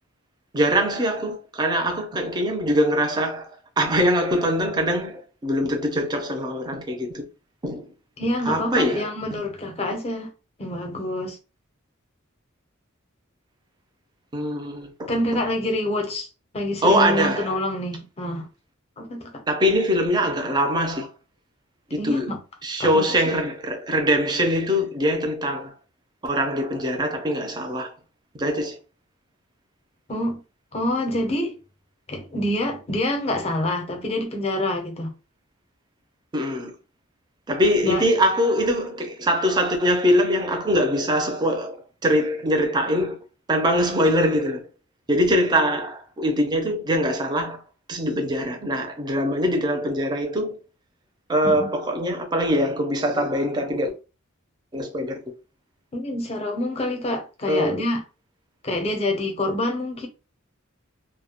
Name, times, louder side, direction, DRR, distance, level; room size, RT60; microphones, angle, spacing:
voice 1, 0.5-3.5 3.8-7.2 7.6-7.9 8.5-9.0 9.3-9.4 14.3-15.1 16.8-17.5 19.5-21.1 21.9-22.3 22.6-25.7 26.2-27.9 28.4-28.8 36.3-36.7 37.5-43.2 43.5-44.7 45.1-47.6 47.9-50.6 51.3-53.9 54.7-55.2 57.5-57.8, equal, 20° right, 0.4 m, -23 dB
voice 2, 8.2-10.3 10.6-11.4 15.1-16.3 16.5-18.5 19.0-19.4 22.0-22.4 22.8-23.2 30.1-30.4 30.7-31.6 32.1-35.1 37.8-38.0 51.4-51.7 55.9-58.0 58.6-60.1, left 1 dB, 30° left, 0.5 m, -26 dB
2.2 x 2.0 x 2.8 m
head